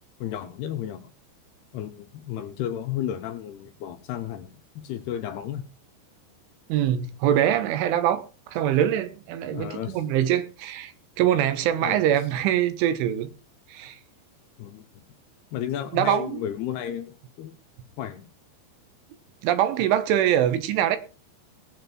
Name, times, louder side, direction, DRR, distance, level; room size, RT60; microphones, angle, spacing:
voice 1, 0.2-1.1 1.7-5.6 9.5-10.0 11.8-12.0 14.6-15.0 15.5-17.6 18.0-18.3, left 10 dB, 75° left, 2.6 m, -33 dB
voice 2, 6.7-10.9 11.2-13.3 13.7-14.0 15.9-16.4 19.4-21.0, right 11 dB, 80° right, 3.8 m, -23 dB
19.0 x 8.7 x 4.5 m
omnidirectional pair, 5.5 m